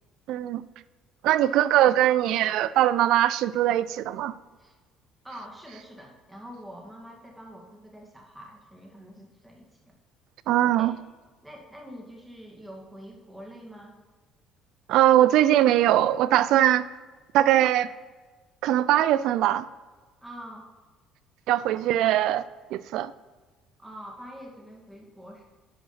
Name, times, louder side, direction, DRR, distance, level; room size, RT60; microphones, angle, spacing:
voice 1, 0.3-0.6 1.2-4.3 10.5-10.9 14.9-16.8 17.3-17.9 18.6-19.7 21.5-22.4 22.7-23.1, right 13 dB, 70° right, 16 dB, 0.4 m, -21 dB
voice 2, 5.2-9.9 10.8-11.0 11.4-13.9 20.2-20.7 23.8-25.4, equal, 10° right, 0 dB, 2.1 m, -45 dB
9.6 x 4.9 x 5.9 m, 1.3 s
cardioid pair, 100°, 0 cm